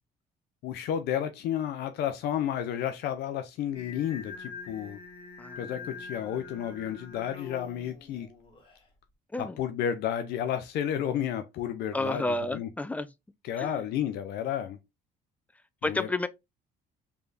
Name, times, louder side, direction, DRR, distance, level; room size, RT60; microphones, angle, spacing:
voice 1, 0.6-5.0 5.6-8.3 9.4-12.7 13.4-14.8 15.8-16.3, left 10 dB, 75° left, 0.5 m, -32 dB
Singing, 3.7-8.9, left 5 dB, 30° left, 1.6 m, -45 dB
voice 2, 5.4-5.7 9.3-9.6 11.9-13.1 13.6-13.8 15.8-16.3, left 2 dB, 10° left, 0.3 m, -31 dB
3.4 x 3.3 x 2.5 m
cardioid pair, 110°, 17 cm